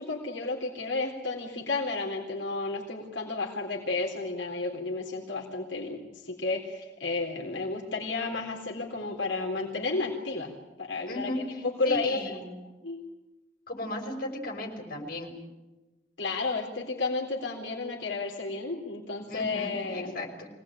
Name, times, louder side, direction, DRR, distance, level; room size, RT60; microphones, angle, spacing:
voice 1, 0.0-12.4 12.8-13.0 16.2-20.2, left 3 dB, 85° left, -2 dB, 3.8 m, -32 dB
voice 2, 11.1-12.5 13.7-15.4 19.3-20.5, left 1 dB, 55° left, 1 dB, 5.8 m, -36 dB
25.0 x 19.0 x 8.9 m, 1.1 s
head